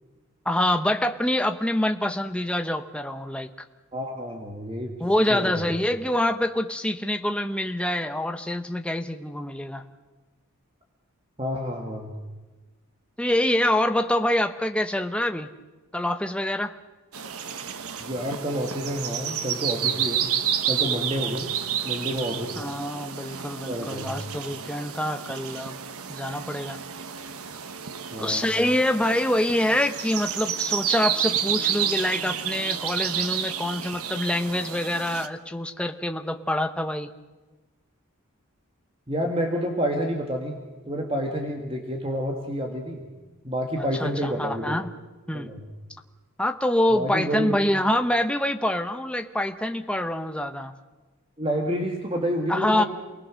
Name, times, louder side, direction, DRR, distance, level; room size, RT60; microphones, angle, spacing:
voice 1, 0.4-3.7 5.0-9.8 13.2-15.5 15.9-16.7 22.6-25.8 26.1-26.8 28.2-37.1 44.0-44.9 45.3-45.5 46.4-50.7 52.5-52.8, left 1 dB, 5° left, 6 dB, 0.9 m, -25 dB
voice 2, 3.9-5.0 5.3-5.7 11.4-12.1 18.0-20.2 20.7-21.5 21.8-22.6 23.7-24.1 28.1-28.4 39.1-40.6 40.9-43.0 43.4-44.8 45.3-45.6 46.9-47.6 51.4-52.9, equal, 25° right, 1 dB, 2.1 m, -29 dB
sound 1, 17.1-35.3, right 9 dB, 85° right, 1.2 m, -30 dB
28.5 x 19.5 x 6.4 m, 1.2 s
head